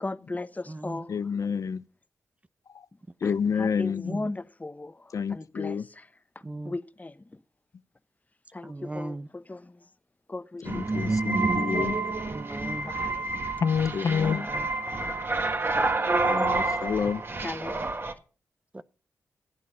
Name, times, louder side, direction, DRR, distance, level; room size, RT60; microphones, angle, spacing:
voice 1, 0.0-1.2 3.2-6.1 6.6-7.2 8.5-9.8 10.3-11.2 12.8-13.2 16.2-16.3 17.4-18.0, left 2 dB, 25° left, 0.9 m, -37 dB
voice 2, 1.1-1.8 2.7-2.9 3.2-4.2 5.1-5.8 10.6-12.0 13.6-14.5 16.2-17.2, left 6 dB, 65° left, 0.6 m, -28 dB
voice 3, 8.7-9.2 12.3-12.9 18.8-18.9, right 2 dB, 20° right, 0.6 m, -36 dB
sound 1, 10.7-18.1, right 3 dB, 40° right, 1.5 m, -28 dB
15.0 x 8.4 x 5.5 m
cardioid pair, 50°, 6 cm